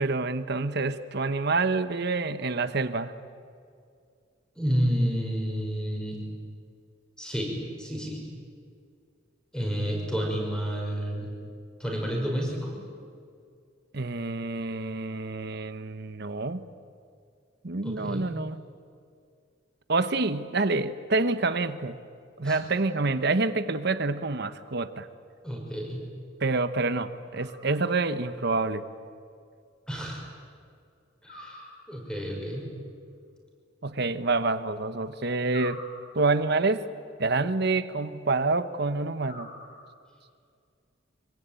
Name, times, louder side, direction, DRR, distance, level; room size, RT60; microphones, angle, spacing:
voice 1, 0.0-3.1 13.9-16.6 17.6-18.6 19.9-22.0 22.4-25.1 26.4-28.8 33.8-35.8 36.1-36.8 37.2-39.5, right 3 dB, 55° right, 11 dB, 1.0 m, -27 dB
voice 2, 4.6-6.2 7.2-8.3 9.5-11.3 11.8-12.8 17.8-18.3 22.4-22.6 25.4-26.0 29.9-30.2 31.2-32.7, equal, 5° left, 0 dB, 6.0 m, -30 dB
sound 1, 27.3-28.2 31.3-32.3 35.5-36.6 39.2-40.2, left 2 dB, 45° left, 7.3 m, -46 dB
25.0 x 23.5 x 9.1 m, 2.3 s
head